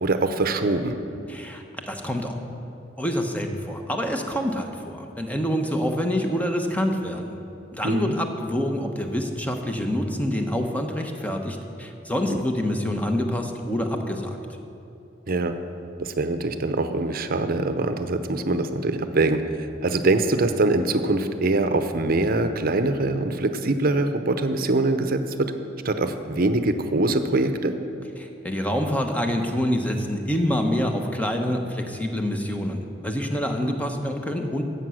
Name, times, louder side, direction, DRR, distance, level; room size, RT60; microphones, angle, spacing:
voice 1, 0.0-1.0 7.8-8.1 12.3-12.4 15.3-15.6 16.0-25.5 25.8-27.8, right 2 dB, 50° right, 9 dB, 0.7 m, -23 dB
voice 2, 1.3-2.4 3.0-7.3 7.7-14.4 28.2-34.6, equal, 10° left, 4 dB, 1.0 m, -26 dB
13.5 x 8.2 x 6.4 m, 2.8 s
head